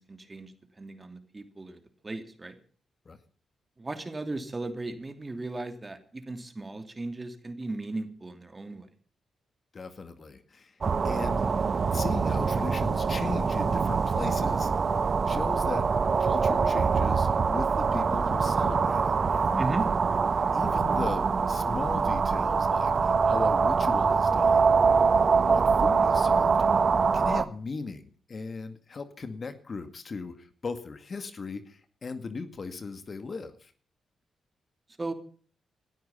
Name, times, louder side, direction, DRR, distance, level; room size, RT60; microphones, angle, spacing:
voice 1, 0.0-2.6 3.8-8.9 19.6-19.9 35.0-35.1, right 2 dB, 30° right, 8 dB, 2.8 m, -36 dB
voice 2, 9.7-10.8 11.0-11.5 11.9-14.7 15.3-15.9 16.2-19.6 20.5-26.6 27.1-33.7, left 4 dB, 50° left, 10 dB, 2.1 m, -38 dB
sound 1, 10.8-27.4, right 5 dB, 50° right, 1.1 m, -24 dB
18.0 x 12.5 x 5.7 m, 0.43 s
hypercardioid pair, 45°, 0 cm